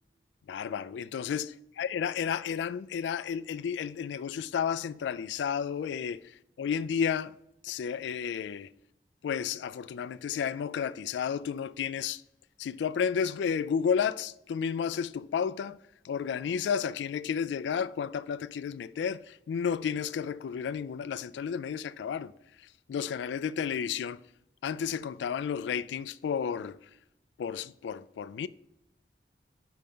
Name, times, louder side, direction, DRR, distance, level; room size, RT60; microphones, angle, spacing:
voice 1, 0.5-7.3 7.6-8.7 9.2-12.2 12.6-15.8 16.0-22.3 22.9-24.2 24.6-26.8 27.4-28.5, left 7 dB, 90° left, 0.3 m, -32 dB
5.7 x 5.1 x 3.6 m
head